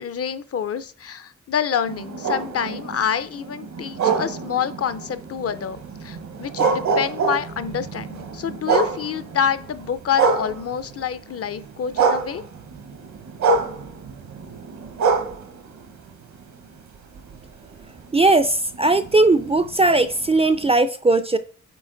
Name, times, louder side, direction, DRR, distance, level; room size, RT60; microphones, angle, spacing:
voice 1, 0.0-12.4, left 8 dB, 50° left, 14 dB, 0.5 m, -27 dB
sound 1, 1.9-11.1 11.4-16.7 17.2-20.7, right 5 dB, 70° right, 1.0 m, -26 dB
voice 2, 18.1-21.4, right 2 dB, 20° right, 11 dB, 0.3 m, -18 dB
8.5 x 4.2 x 3.9 m, 0.44 s
wide cardioid pair, 115°, 30 cm